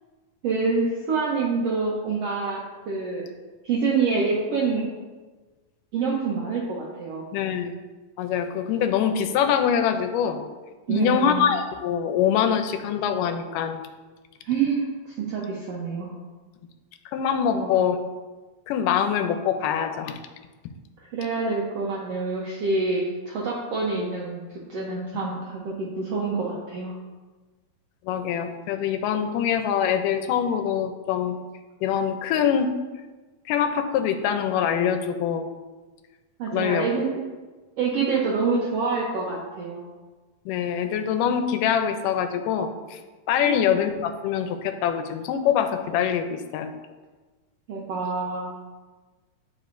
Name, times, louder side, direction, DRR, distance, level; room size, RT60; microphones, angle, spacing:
voice 1, 0.4-3.2 3.6-4.9 5.9-7.2 10.9-11.5 14.4-16.1 17.5-17.8 21.1-24.4 24.7-26.9 36.4-37.2 37.8-39.9 43.4-43.6 47.7-48.5, right 4 dB, 85° right, -3 dB, 1.3 m, -26 dB
voice 2, 7.3-7.7 8.2-10.4 10.9-13.8 17.1-18.0 18.7-20.2 28.1-31.4 31.8-32.7 33.5-35.5 36.5-36.9 40.5-43.0 43.3-46.7, left 8 dB, 80° left, 7 dB, 2.1 m, -24 dB
10.5 x 4.9 x 2.5 m, 1.3 s
omnidirectional pair, 3.9 m